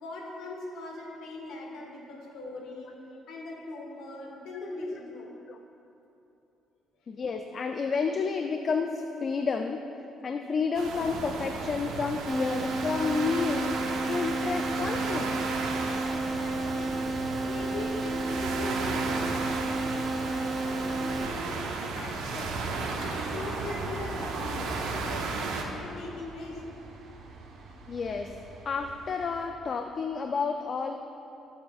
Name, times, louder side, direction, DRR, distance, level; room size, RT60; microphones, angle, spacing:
voice 1, 0.0-2.9 3.3-5.3 16.1-17.0 17.4-21.6 21.9-22.6 23.0-24.7 25.0-26.6, left 2 dB, 75° left, -1 dB, 1.8 m, -40 dB
voice 2, 7.1-9.8 10.2-13.7 14.1-15.5 27.9-28.3 28.7-31.0, left 5 dB, 35° left, 5 dB, 0.4 m, -30 dB
sound 1, 10.7-25.6, right 4 dB, 90° right, 1.0 m, -34 dB
sound 2, 12.3-21.3, right 2 dB, 20° right, 0.4 m, -32 dB
sound 3, 15.4-29.5, right 3 dB, 60° right, 1.0 m, -43 dB
17.0 x 7.2 x 2.4 m, 2.9 s
cardioid pair, 135°, 0 cm